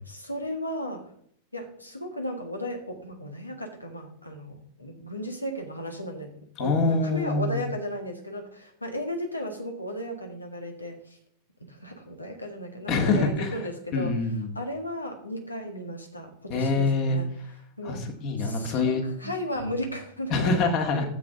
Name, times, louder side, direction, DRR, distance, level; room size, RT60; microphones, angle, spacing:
voice 1, 0.0-1.1 1.5-11.2 11.6-14.2 14.5-17.3 17.8-18.0 18.4-20.5 20.9-21.1, equal, 85° left, 3 dB, 1.7 m, -35 dB
voice 2, 6.6-7.6 12.9-13.5 13.9-14.6 16.5-17.2 17.8-19.0 20.3-21.1, left 3 dB, 40° left, 4 dB, 1.9 m, -25 dB
12.0 x 7.6 x 3.8 m, 0.66 s
figure-of-eight pair, 90°, 0 cm